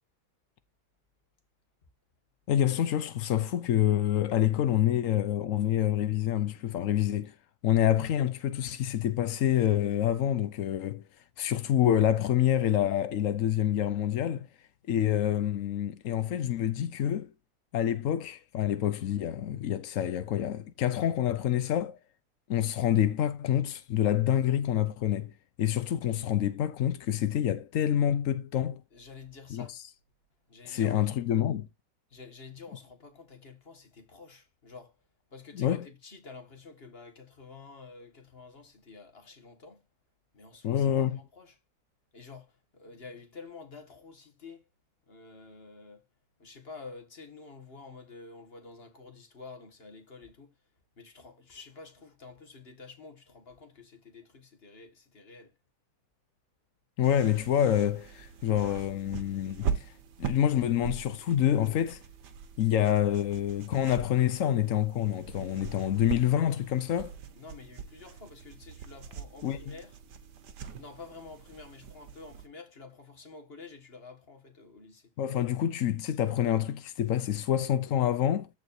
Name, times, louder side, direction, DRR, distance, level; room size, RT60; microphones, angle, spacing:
voice 1, 2.5-7.3 7.6-11.0 11.4-14.5 14.9-17.3 17.7-22.0 22.5-25.3 25.6-28.8 29.5-29.8 30.7-31.7 35.5-35.9 40.6-41.2 57.0-59.9 60.2-62.0 62.6-67.1 69.4-69.7 75.2-78.5, left 11 dB, 70° left, 0.7 m, -27 dB
voice 2, 28.9-29.8 30.5-31.0 32.1-35.0 35.3-39.8 40.3-41.6 42.1-44.7 45.1-46.0 46.4-50.5 51.0-55.5 67.3-70.0 70.8-75.1, left 4 dB, 30° left, 2.1 m, -49 dB
sound 1, 57.0-72.5, right 6 dB, 60° right, 1.7 m, -41 dB
14.5 x 4.9 x 2.7 m
omnidirectional pair, 2.2 m